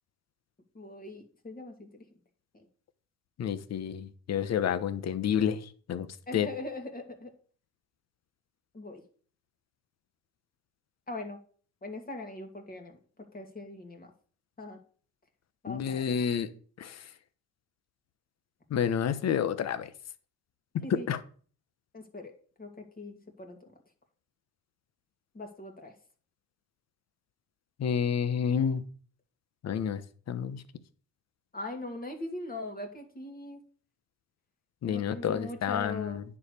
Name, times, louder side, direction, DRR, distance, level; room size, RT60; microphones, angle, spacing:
voice 1, 0.7-2.0 6.3-7.3 8.7-9.0 11.1-11.4 11.8-13.0 13.3-14.1 14.6-14.8 15.6-16.0 20.8-21.1 21.9-22.3 22.6-22.7 23.0-23.6 25.3-25.9 31.5-33.6 34.8-36.2, left 2 dB, 30° left, 2.5 m, -40 dB
voice 2, 3.4-6.1 6.3-6.5 15.7-16.5 16.8-17.1 18.7-19.9 20.9-21.2 27.8-28.8 29.6-30.0 30.3-30.6 34.8-36.2, left 8 dB, 60° left, 1.0 m, -29 dB
9.7 x 4.9 x 6.9 m
cardioid pair, 90°, 30 cm